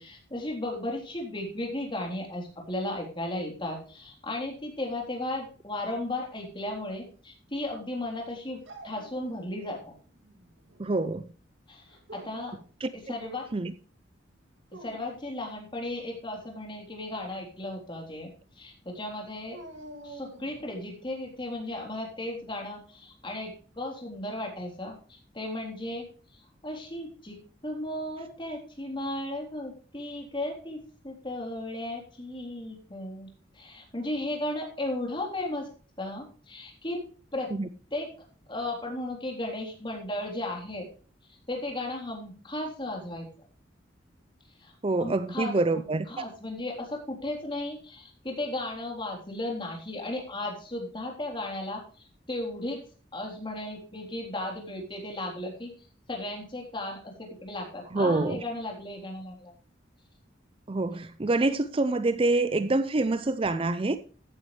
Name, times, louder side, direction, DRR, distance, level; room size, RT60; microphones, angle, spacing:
voice 1, 0.0-8.6 8.8-9.9 11.7-11.8 12.1-12.5 12.9-13.5 14.8-18.3 18.6-19.6 20.0-24.9 25.3-26.0 26.6-27.4 27.6-33.3 33.6-35.7 36.0-37.0 37.3-37.5 37.9-38.1 38.5-40.9 41.5-43.3 44.6-44.7 45.0-45.8 46.1-51.8 52.3-52.8 53.1-55.7 56.1-59.5, left 1 dB, 25° left, 3.7 m, -35 dB
Dog, 8.6-9.8 10.2-10.9 11.9-12.6 14.6-15.2 19.5-20.8, right 1 dB, 80° right, 2.5 m, -48 dB
voice 2, 10.8-11.3 12.8-12.9 13.5-13.7 37.5-37.7 44.8-46.1 57.9-58.4 60.7-64.0, right 2 dB, 30° right, 0.5 m, -26 dB
14.5 x 9.6 x 3.2 m
head